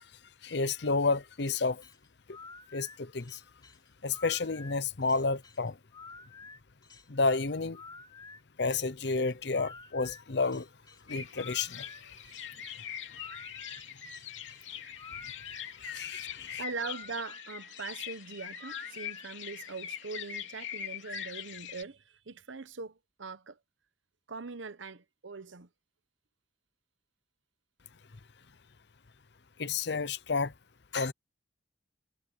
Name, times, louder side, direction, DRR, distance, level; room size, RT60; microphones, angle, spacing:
voice 1, 0.4-1.8 2.7-3.4 4.0-5.8 7.1-7.8 8.6-10.7 11.1-11.9 15.8-16.6 29.6-30.5 30.9-31.1, left 4 dB, 60° left, 0.8 m, -30 dB
sound 1, 1.4-19.3, left 4 dB, 20° left, 3.8 m, -51 dB
sound 2, 11.1-21.8, left 8 dB, 80° left, 2.9 m, -42 dB
voice 2, 16.6-23.6 24.3-25.7, right 4 dB, 90° right, 1.1 m, -41 dB
head